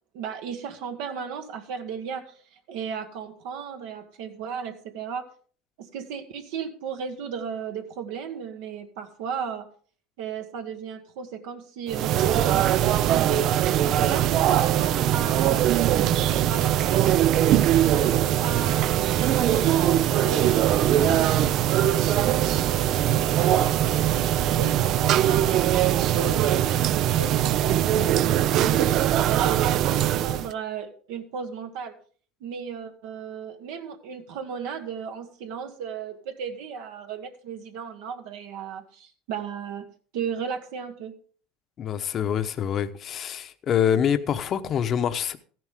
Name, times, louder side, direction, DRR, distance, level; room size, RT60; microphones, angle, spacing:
voice 1, 0.1-2.3 2.7-5.3 5.8-9.6 10.2-13.5 14.0-15.6 15.9-17.4 17.9-28.9 29.3-31.9 32.4-39.9 40.1-41.1, right 7 dB, 75° right, 1.5 m, -35 dB
sound 1, 11.9-30.5, right 12 dB, 50° right, 0.4 m, -21 dB
voice 2, 41.8-45.4, left 8 dB, 40° left, 0.9 m, -25 dB
14.5 x 11.0 x 3.6 m
supercardioid pair, 125°, 0 cm